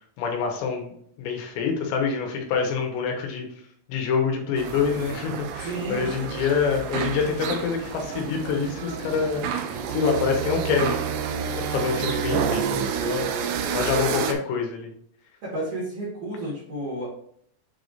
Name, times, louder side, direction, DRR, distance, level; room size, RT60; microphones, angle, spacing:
voice 1, 0.2-3.5 3.9-9.4 9.9-11.1 11.3-13.5 13.7-14.9, left 6 dB, 80° left, 2 dB, 3.4 m, -26 dB
sound 1, 4.6-14.3, right 7 dB, 80° right, 2.5 m, -29 dB
voice 2, 5.6-6.4 15.4-17.1, right 1 dB, 50° right, -9 dB, 2.9 m, -32 dB
7.5 x 4.9 x 2.6 m, 0.65 s
omnidirectional pair, 5.3 m